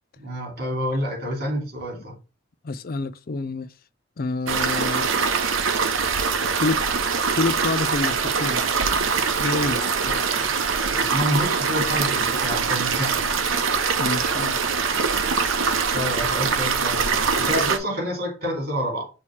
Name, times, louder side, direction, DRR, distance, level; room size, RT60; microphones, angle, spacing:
voice 1, 0.2-2.2 10.0-10.2 10.9-13.2 15.9-19.1, equal, 50° right, 2.7 m, -28 dB
voice 2, 2.6-3.7 4.2-5.1 6.6-6.8 7.3-8.6 9.4-9.8 14.0-14.6, left 3 dB, 50° left, 0.4 m, -27 dB
sound 1, 4.5-17.8, right 5 dB, 85° right, 0.8 m, -23 dB
6.3 x 2.9 x 5.6 m
head